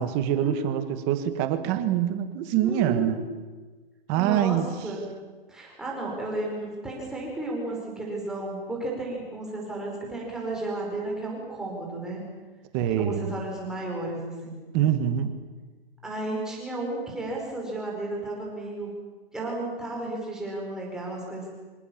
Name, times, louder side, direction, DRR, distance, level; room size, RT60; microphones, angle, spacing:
voice 1, 0.0-3.2 4.1-4.9 12.7-13.3 14.7-15.3, right 10 dB, 20° right, 10 dB, 1.5 m, -25 dB
voice 2, 2.5-3.2 4.1-5.0 5.5-12.3 12.9-14.6 16.0-19.0 19.3-21.5, right 2 dB, ahead, -3 dB, 5.1 m, -33 dB
26.0 x 25.0 x 7.3 m, 1.3 s
hypercardioid pair, 170°, 30 cm